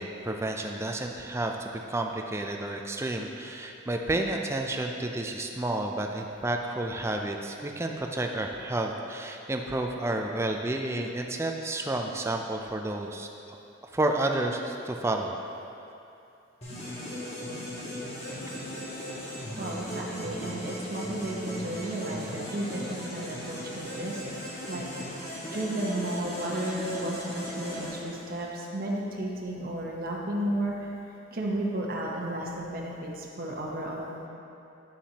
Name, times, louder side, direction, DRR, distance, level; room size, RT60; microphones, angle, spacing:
voice 1, 0.0-13.3 13.9-15.3, right 2 dB, 15° right, 2 dB, 0.4 m, -30 dB
sound 1, 16.6-28.7, equal, 35° left, 1.5 m, -38 dB
voice 2, 19.6-24.2 24.7-25.1 25.5-30.9 31.3-34.3, right 1 dB, 50° right, -2 dB, 1.0 m, -33 dB
9.1 x 7.1 x 2.9 m, 2.7 s
head